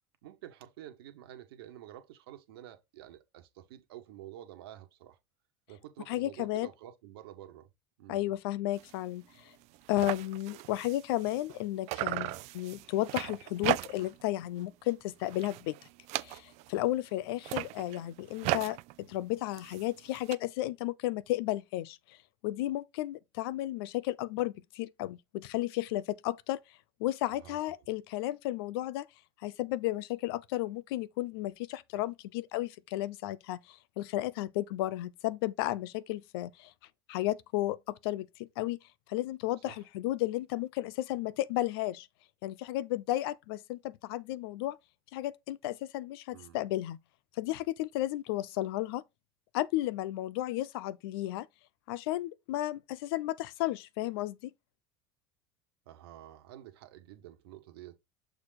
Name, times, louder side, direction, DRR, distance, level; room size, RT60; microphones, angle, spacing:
voice 1, 0.2-5.2 5.7-7.7 8.0-8.3 27.3-27.7 39.6-39.9 46.3-46.6 55.8-58.0, right 12 dB, 80° right, 1.4 m, -49 dB
voice 2, 6.1-6.7 8.1-9.5 9.9-15.8 16.2-22.2 22.4-26.6 27.0-29.1 29.4-36.7 37.1-38.8 39.1-42.1 42.4-44.8 45.1-47.0 47.4-49.0 49.5-51.5 51.9-54.4, left 15 dB, 75° left, 0.6 m, -33 dB
sound 1, 8.7-9.0 9.3-9.4 9.6-11.6 11.9-14.2 14.6-14.9 15.2-16.8 17.3-20.3, right 18 dB, 60° right, 0.6 m, -37 dB
6.9 x 4.0 x 4.1 m
hypercardioid pair, 85°, 13 cm